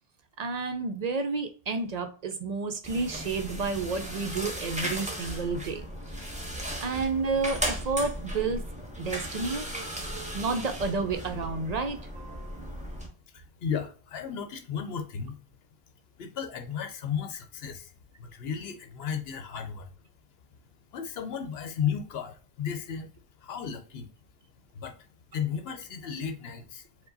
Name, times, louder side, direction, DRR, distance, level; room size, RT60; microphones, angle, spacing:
voice 1, 0.4-5.9 6.1-6.4 6.8-8.6 9.0-9.7 10.3-12.9, right 4 dB, 55° right, 0.5 m, -31 dB
sound 1, 2.8-13.1, equal, 10° right, 0.8 m, -36 dB
voice 2, 13.3-15.4 16.2-17.9 18.2-19.9 20.9-23.1 23.4-24.1 24.7-25.0 25.3-26.9, left 7 dB, 80° left, 0.9 m, -34 dB
4.7 x 2.2 x 3.9 m
omnidirectional pair, 1.0 m